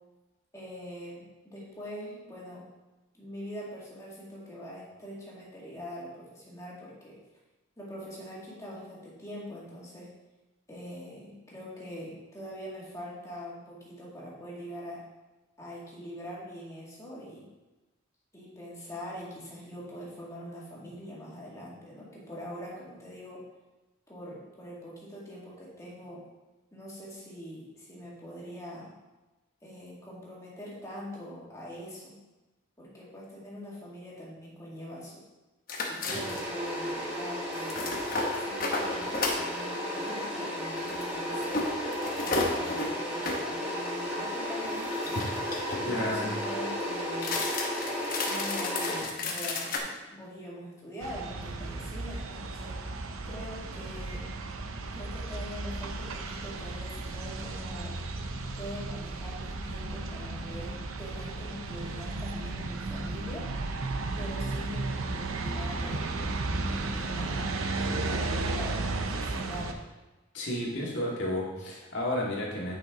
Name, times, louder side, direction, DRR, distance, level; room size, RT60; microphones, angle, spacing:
voice 1, 0.5-2.7 3.1-7.2 7.8-10.1 10.7-15.1 15.6-17.5 18.3-23.5 24.1-26.3 26.7-28.9 29.6-32.2 32.8-35.2 35.8-37.9 38.3-41.7 42.2-45.2 45.8-47.4 48.3-53.0 53.3-54.3 54.9-58.0 58.6-63.5 64.2-66.1 66.7-69.8, equal, 15° left, -6 dB, 2.0 m, -43 dB
sound 1, 35.7-36.6 37.5-39.5 40.8-43.5 44.7-45.9 47.1-49.8, left 2 dB, 45° left, 1.0 m, -33 dB
sound 2, 36.1-49.0, equal, 10° right, 1.5 m, -34 dB
voice 2, 45.8-46.3 70.3-72.8, left 1 dB, 60° left, -3 dB, 1.9 m, -32 dB
sound 3, 51.0-69.7, right 2 dB, 90° right, 0.7 m, -34 dB
9.1 x 5.7 x 3.7 m, 1.1 s
head